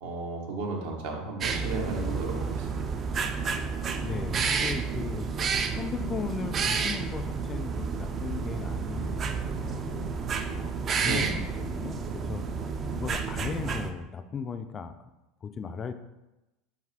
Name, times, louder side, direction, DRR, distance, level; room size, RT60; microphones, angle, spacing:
voice 1, 0.0-2.8 11.1-11.5, right 3 dB, 70° right, 0 dB, 0.9 m, -34 dB
sound 1, 1.4-13.9, right 5 dB, 40° right, 0.4 m, -30 dB
voice 2, 4.0-5.3 5.8-12.5 12.9-15.1 15.4-15.9, left 6 dB, 35° left, 9 dB, 0.3 m, -37 dB
4.2 x 4.0 x 2.8 m, 1.0 s
hypercardioid pair, 80°, 0 cm